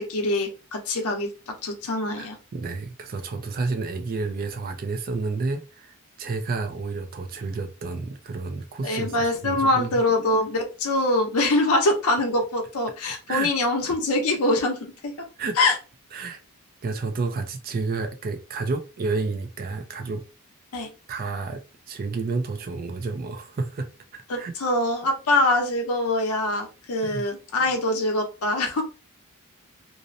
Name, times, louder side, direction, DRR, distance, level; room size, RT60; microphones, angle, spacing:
voice 1, 0.0-2.4 8.8-15.1 15.6-15.8 20.7-20.9 24.3-28.8, left 2 dB, 80° left, 0.7 m, -24 dB
voice 2, 2.2-10.0 13.3-13.5 15.4-15.7 16.1-16.4 16.8-20.2 21.1-23.9 24.4-24.5 27.0-27.2, right 3 dB, 40° right, 0.4 m, -30 dB
2.6 x 2.0 x 2.6 m
head